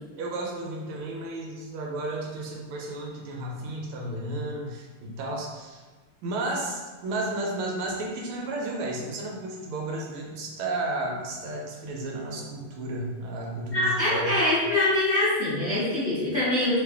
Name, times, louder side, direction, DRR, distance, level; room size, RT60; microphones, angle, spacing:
voice 1, 0.2-5.8 6.2-14.3, right 2 dB, 80° right, -1 dB, 1.5 m, -33 dB
voice 2, 13.7-16.8, left 1 dB, 40° left, -12 dB, 1.1 m, -24 dB
3.5 x 2.4 x 3.4 m, 1.3 s
omnidirectional pair, 2.4 m